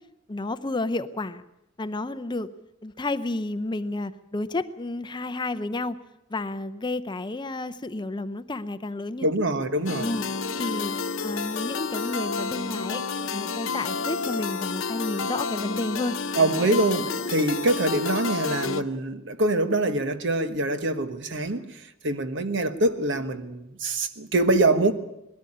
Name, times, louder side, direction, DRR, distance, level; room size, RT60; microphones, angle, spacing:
voice 1, 0.3-1.4 1.8-2.5 2.8-6.0 6.3-9.3 10.0-10.2 10.6-10.9 11.2-13.0 13.3-16.1 17.0-17.4, left 2 dB, 25° left, 0.7 m, -31 dB
voice 2, 9.2-10.1 16.3-24.9, right 2 dB, 65° right, 1.4 m, -24 dB
sound 1, 9.9-18.8, left 5 dB, 85° left, 1.0 m, -30 dB
20.0 x 13.0 x 9.9 m
head